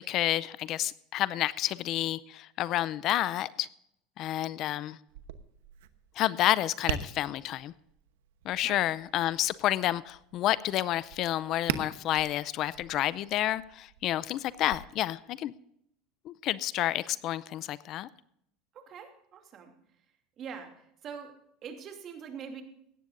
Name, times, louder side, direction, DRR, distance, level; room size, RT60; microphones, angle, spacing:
voice 1, 0.0-3.7 4.2-5.0 6.2-7.7 8.5-15.5 16.3-18.1, left 13 dB, 50° left, 0.5 m, -30 dB
Tap, 5.1-14.8, right 10 dB, 90° right, 1.0 m, -42 dB
voice 2, 18.7-19.7 20.4-20.7 21.0-21.3 21.6-22.6, right 7 dB, 40° right, 2.6 m, -43 dB
17.0 x 12.5 x 2.6 m
supercardioid pair, 125°, 0 cm